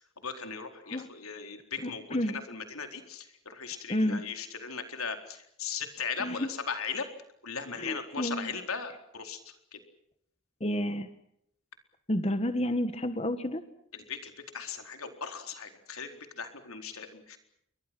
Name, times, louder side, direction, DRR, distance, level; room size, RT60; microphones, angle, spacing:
voice 1, 0.2-7.1 7.4-9.4 9.7-9.8 13.9-17.4, left 6 dB, 90° left, 6 dB, 4.2 m, -38 dB
voice 2, 3.9-4.2 6.2-6.5 7.7-8.5 10.6-11.1 12.1-13.6, left 1 dB, 30° left, 10 dB, 1.4 m, -30 dB
29.5 x 23.5 x 6.1 m, 0.73 s
head